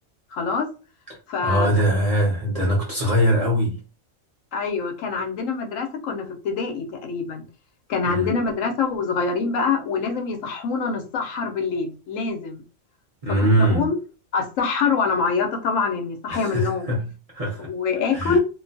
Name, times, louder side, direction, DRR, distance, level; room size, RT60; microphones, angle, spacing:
voice 1, 0.3-0.7 1.3-1.7 4.5-7.4 7.9-12.6 13.6-14.0 14.3-16.9 17.6-18.4, left 5 dB, 80° left, 1.0 m, -25 dB
voice 2, 1.4-3.8 8.1-8.3 13.2-13.9 16.3-17.1 17.3-17.7 18.1-18.4, equal, 35° right, 0.6 m, -22 dB
2.5 x 2.2 x 2.5 m
omnidirectional pair, 1.3 m